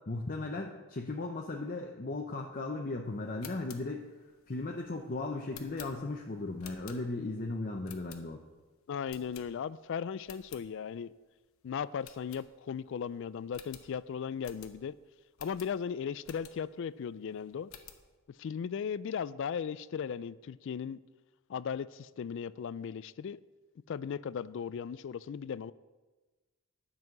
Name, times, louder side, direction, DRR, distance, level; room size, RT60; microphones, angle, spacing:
voice 1, 0.1-4.1 4.5-8.4, left 2 dB, 40° left, 0.7 m, -36 dB
sound 1, 3.2-7.4 7.8-8.6 9.1-9.9 10.2-10.7 11.1-11.2 11.5-11.6 12.0-12.9 13.2-13.3 13.5-16.8 17.3-18.1, left 8 dB, 75° left, 1.0 m, -52 dB
voice 2, 8.9-11.1 11.6-14.9 15.4-17.7 18.4-21.0 21.5-23.4 23.9-25.7, left 7 dB, 60° left, 0.3 m, -37 dB
10.5 x 5.5 x 7.8 m
head